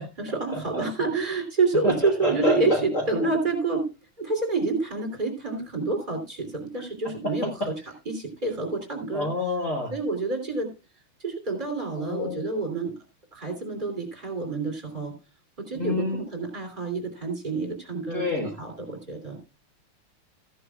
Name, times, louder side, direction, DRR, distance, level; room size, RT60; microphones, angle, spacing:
voice 1, 0.2-3.9 4.2-7.5 8.1-9.3 9.9-10.7 11.2-12.9 13.3-15.1 15.6-19.4, right 3 dB, 20° right, 2 dB, 3.2 m, -28 dB
voice 2, 1.8-3.3 7.2-7.3 9.1-9.9 12.0-12.4 15.8-16.2 18.1-18.5, left 2 dB, 40° left, 1 dB, 1.8 m, -28 dB
14.5 x 11.0 x 2.3 m, 0.28 s
omnidirectional pair, 2.3 m